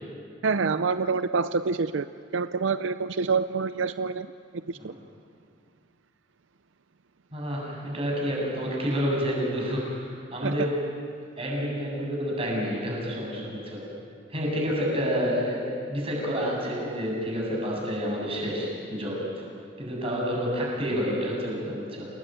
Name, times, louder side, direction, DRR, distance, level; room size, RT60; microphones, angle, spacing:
voice 1, 0.4-2.1 2.3-4.3 4.5-4.9 10.4-10.5, right 4 dB, 80° right, 12 dB, 0.6 m, -26 dB
voice 2, 7.3-10.9 11.4-13.8 14.3-19.5 19.8-22.1, equal, 30° right, -3 dB, 8.0 m, -29 dB
28.5 x 20.0 x 9.2 m, 2.3 s
head